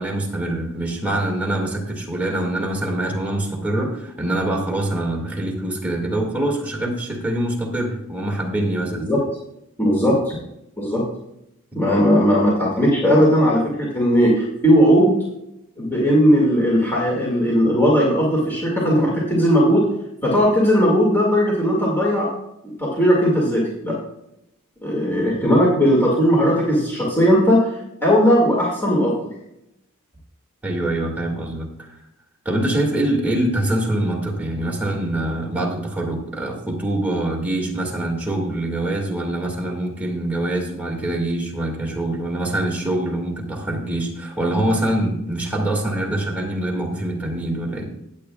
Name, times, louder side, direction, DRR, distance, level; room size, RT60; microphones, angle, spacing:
voice 1, 0.0-9.1 30.6-31.9 32.5-47.9, right 1 dB, 5° right, -1 dB, 2.0 m, -24 dB
voice 2, 9.8-10.4 10.8-11.0 11.7-15.2 15.8-19.9 20.2-22.3 22.8-24.0 24.8-27.6 28.0-29.2, equal, 10° left, -4 dB, 2.1 m, -17 dB
15.0 x 8.6 x 2.3 m, 0.83 s
head